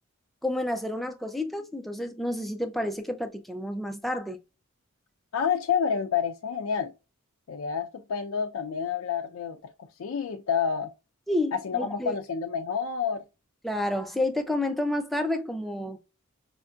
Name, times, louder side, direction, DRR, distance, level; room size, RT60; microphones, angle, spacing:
voice 1, 0.4-4.4 11.3-12.2 13.6-16.0, left 1 dB, ahead, 0.4 m, -30 dB
voice 2, 5.3-6.9 7.5-10.9 11.5-13.2, left 7 dB, 70° left, 0.4 m, -29 dB
5.1 x 2.6 x 2.3 m
head